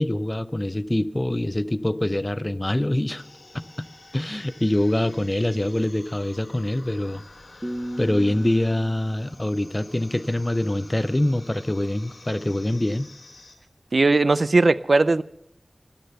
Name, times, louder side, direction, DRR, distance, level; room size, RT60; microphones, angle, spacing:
voice 1, 0.0-3.2 3.5-3.9 4.1-7.2 8.0-13.1, left 1 dB, 25° left, 0.5 m, -24 dB
sound 1, 3.1-13.6, left 2 dB, 75° left, 2.5 m, -49 dB
sound 2, 7.6-10.6, equal, 10° right, 1.1 m, -37 dB
voice 2, 13.9-15.2, right 3 dB, 75° right, 0.4 m, -18 dB
14.0 x 11.5 x 6.8 m
wide cardioid pair, 50°, 0 cm